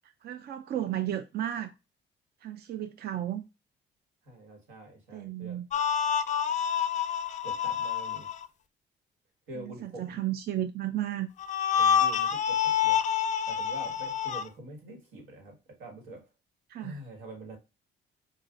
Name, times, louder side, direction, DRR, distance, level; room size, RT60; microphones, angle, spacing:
voice 1, 0.2-1.7 2.4-3.4 5.1-5.7 9.5-11.3 16.7-17.0, right 12 dB, 55° right, 0.4 m, -33 dB
voice 2, 4.2-5.6 7.4-8.3 9.5-10.2 11.8-13.0 13.5-16.2 16.8-17.6, right 1 dB, 90° right, 1.6 m, -45 dB
sound 1, 5.7-8.4 11.4-14.4, left 8 dB, 40° left, 0.4 m, -27 dB
5.5 x 2.5 x 2.4 m
cardioid pair, 90°, 20 cm